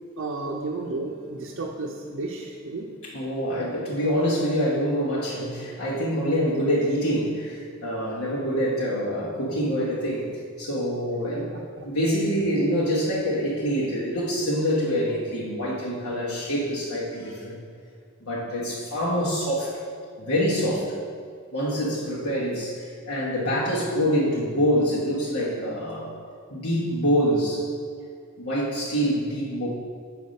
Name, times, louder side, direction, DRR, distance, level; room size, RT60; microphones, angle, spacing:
voice 1, 0.2-2.9 11.3-11.8, right 3 dB, 65° right, -2 dB, 0.6 m, -33 dB
voice 2, 3.1-11.5 11.8-17.6 18.2-19.8 20.2-20.9 21.5-26.2 26.5-27.7 28.4-29.7, equal, 80° left, -6 dB, 1.3 m, -25 dB
7.0 x 4.8 x 5.2 m, 2.1 s
head